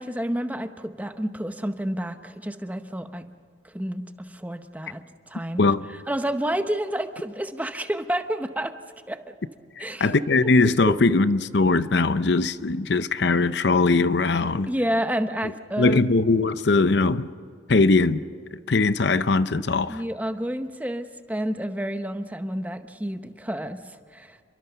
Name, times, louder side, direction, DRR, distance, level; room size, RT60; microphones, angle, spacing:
voice 1, 0.0-3.2 3.6-5.6 6.1-8.7 9.1-9.3 9.8-10.1 10.6-11.0 14.7-16.1 19.9-24.4, right 1 dB, 10° right, 0.8 m, -30 dB
voice 2, 10.0-14.7 15.8-17.3 17.7-18.2 18.7-20.0, left 3 dB, 60° left, 0.6 m, -20 dB
29.0 x 23.0 x 6.8 m
head